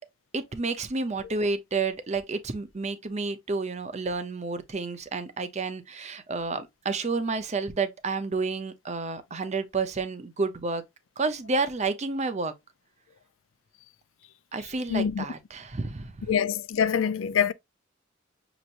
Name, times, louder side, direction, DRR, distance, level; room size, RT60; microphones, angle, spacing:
voice 1, 0.3-10.8 11.2-12.5 14.5-16.3, right 4 dB, 35° right, 0.6 m, -30 dB
voice 2, 14.9-15.2 16.3-17.5, left 7 dB, 90° left, 0.5 m, -25 dB
6.5 x 3.0 x 2.5 m
head